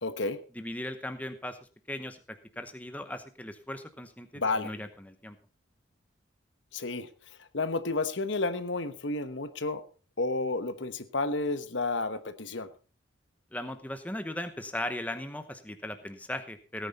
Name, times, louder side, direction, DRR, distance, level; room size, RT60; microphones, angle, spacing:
voice 1, 0.0-0.4 4.3-4.7 6.7-9.8 10.2-12.7, left 3 dB, 75° left, 11 dB, 1.0 m, -31 dB
voice 2, 0.5-1.6 1.9-5.4 13.5-16.9, left 1 dB, 10° left, 9 dB, 0.9 m, -38 dB
17.0 x 9.4 x 4.1 m, 0.37 s
head